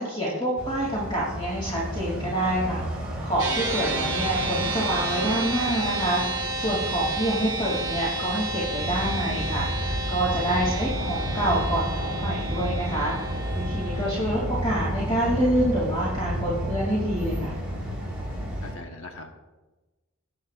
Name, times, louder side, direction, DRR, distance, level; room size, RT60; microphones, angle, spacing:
voice 1, 0.0-2.8 3.2-17.5, right 1 dB, 20° left, -6 dB, 2.7 m, -27 dB
sound 1, 0.6-18.7, equal, 5° right, 3.9 m, -32 dB
sound 2, 3.4-14.2, right 2 dB, 20° right, 2.1 m, -31 dB
voice 2, 10.6-11.2 18.6-19.3, left 2 dB, 65° left, 3 dB, 1.2 m, -40 dB
20.0 x 8.7 x 2.5 m, 1.1 s
head